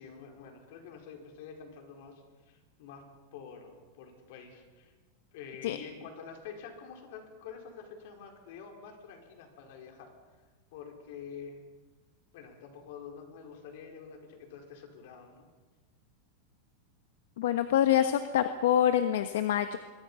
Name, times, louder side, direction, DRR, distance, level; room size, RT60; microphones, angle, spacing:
voice 1, 0.0-3.0 3.3-4.9 5.3-10.1 10.7-11.7 12.3-15.5, left 6 dB, 55° left, 3 dB, 5.1 m, -47 dB
voice 2, 17.4-19.8, left 10 dB, 75° left, 9 dB, 1.3 m, -26 dB
26.5 x 23.5 x 5.8 m, 1.3 s
supercardioid pair, 165°, 0 cm